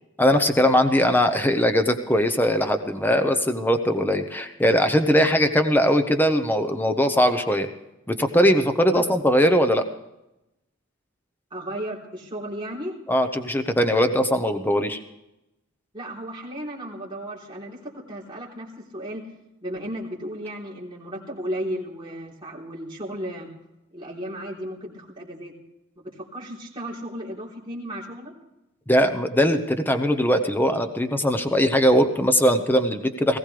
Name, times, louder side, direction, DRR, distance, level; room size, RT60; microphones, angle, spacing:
voice 1, 0.2-7.7 8.1-9.8 13.1-15.0 28.9-33.4, equal, 10° left, 8 dB, 0.9 m, -20 dB
voice 2, 11.5-12.9 15.9-19.2 19.6-23.5 23.9-25.5 26.0-28.3, equal, 25° right, -4 dB, 3.6 m, -34 dB
19.0 x 16.0 x 3.4 m, 0.90 s
head